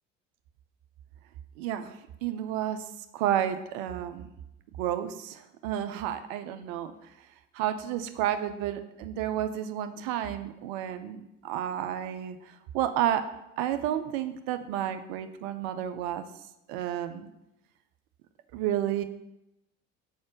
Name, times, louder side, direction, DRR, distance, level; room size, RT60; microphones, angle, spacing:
voice 1, 1.6-2.8 3.1-4.3 4.8-6.9 7.5-13.2 13.6-16.3 16.7-17.3 18.5-19.0, right 11 dB, 55° right, 9 dB, 0.7 m, -31 dB
6.1 x 4.3 x 5.8 m, 0.87 s
figure-of-eight pair, 55°, 39 cm